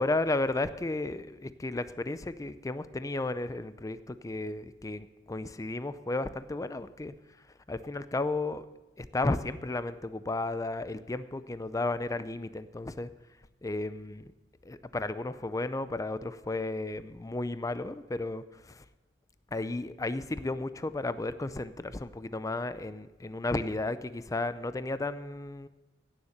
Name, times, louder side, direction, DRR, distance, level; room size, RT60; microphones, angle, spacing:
voice 1, 0.0-7.1 7.7-8.6 9.0-13.1 13.6-14.3 14.6-18.8 19.5-25.7, left 2 dB, 20° left, 13 dB, 0.5 m, -33 dB
16.5 x 7.2 x 6.4 m, 1.1 s
head